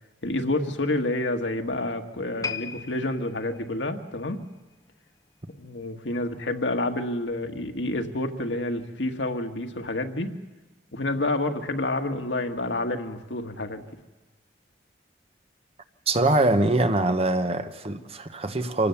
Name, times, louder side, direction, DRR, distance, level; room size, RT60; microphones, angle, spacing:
voice 1, 0.2-4.4 5.6-10.3 10.9-13.9, left 2 dB, 85° left, 1.7 m, -29 dB
sound 1, 2.4-5.7 6.0-6.3 7.0-7.1, left 6 dB, 20° left, 0.8 m, -39 dB
voice 2, 16.1-18.9, right 2 dB, 35° right, 1.1 m, -23 dB
25.5 x 18.5 x 7.1 m
head